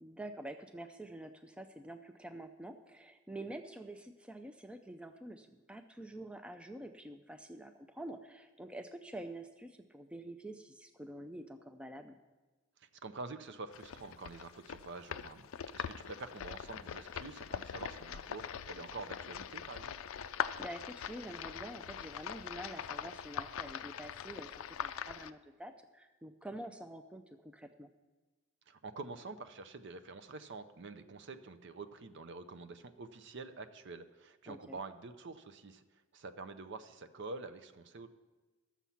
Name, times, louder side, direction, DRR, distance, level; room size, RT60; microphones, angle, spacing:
voice 1, 0.0-12.2 20.6-27.9 34.5-34.8, right 1 dB, 5° right, 7 dB, 0.4 m, -47 dB
voice 2, 12.8-15.5 15.7-19.9 28.7-38.1, right 3 dB, 55° right, 10 dB, 0.6 m, -47 dB
sound 1, 13.7-25.3, left 8 dB, 70° left, 0.4 m, -42 dB
12.5 x 7.2 x 5.7 m, 1.2 s
head